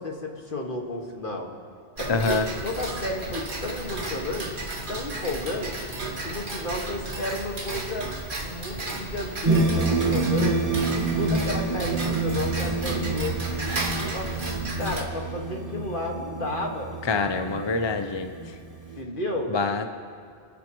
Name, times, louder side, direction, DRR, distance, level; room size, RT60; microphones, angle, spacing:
voice 1, 0.0-1.5 2.0-4.6 4.9-5.8 6.2-8.1 8.4-13.3 14.1-17.5 19.0-19.6, left 1 dB, 50° left, 0 dB, 1.9 m, -32 dB
Tick-tock, 2.0-15.0, right 2 dB, 50° right, 1.7 m, -33 dB
voice 2, 2.1-2.5 17.1-18.3 19.5-19.9, left 4 dB, 35° left, 7 dB, 0.5 m, -25 dB
sound 1, 9.5-19.0, right 3 dB, 35° right, 1.2 m, -28 dB
30.0 x 11.5 x 3.0 m, 2.4 s
omnidirectional pair, 1.1 m